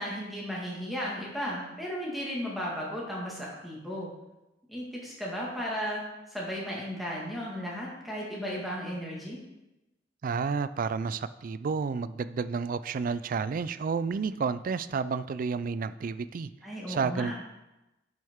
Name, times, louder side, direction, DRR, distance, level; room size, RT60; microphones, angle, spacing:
voice 1, 0.0-4.1 4.7-6.0 6.3-9.4 16.6-17.3, equal, ahead, -5 dB, 1.8 m, -35 dB
voice 2, 10.2-16.5 16.9-17.4, right 5 dB, 50° right, 15 dB, 0.3 m, -31 dB
9.8 x 6.3 x 3.6 m, 0.96 s
head